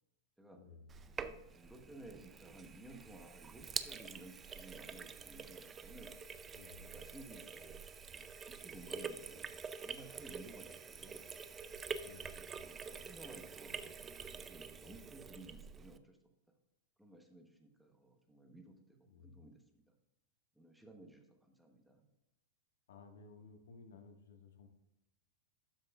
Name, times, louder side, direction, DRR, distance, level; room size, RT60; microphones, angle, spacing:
voice 1, 0.5-0.9 6.5-6.9 12.0-12.5 19.1-19.4 22.9-24.7, left 4 dB, 85° left, 4 dB, 1.7 m, -57 dB
Sink (filling or washing), 0.9-16.0, right 6 dB, 20° right, 0.5 m, -47 dB
voice 2, 1.2-6.1 6.7-7.8 8.1-11.3 12.0-16.2 17.0-19.0 19.2-19.9 20.6-22.0, right 1 dB, 5° right, 3 dB, 1.1 m, -56 dB
12.5 x 6.5 x 2.4 m, 0.93 s
supercardioid pair, 140°, 0 cm